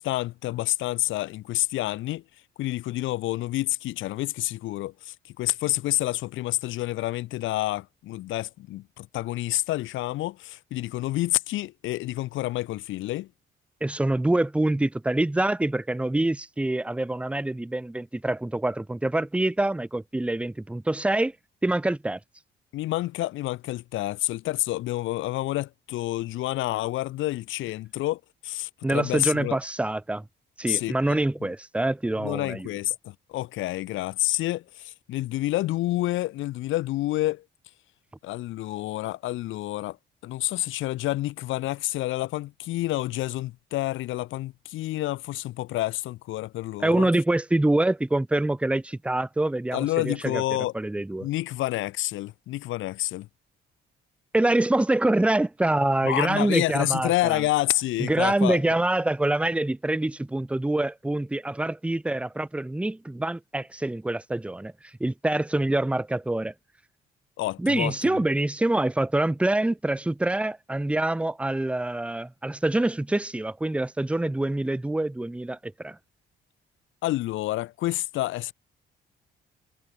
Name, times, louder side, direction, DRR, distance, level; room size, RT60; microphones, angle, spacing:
voice 1, 0.0-2.2 2.6-13.3 22.7-29.6 30.7-31.2 32.2-37.4 38.2-40.0 40.2-47.1 49.7-50.7 51.2-53.3 56.0-58.6 67.4-67.9 77.0-78.5, left 16 dB, 80° left, 0.5 m, -28 dB
voice 2, 13.8-21.3 21.6-22.2 28.8-30.2 30.6-32.7 46.8-50.4 50.7-51.3 54.3-57.4 58.0-64.7 65.0-66.5 67.6-76.0, right 1 dB, 5° right, 0.6 m, -25 dB
cardioid pair, 90°, 20 cm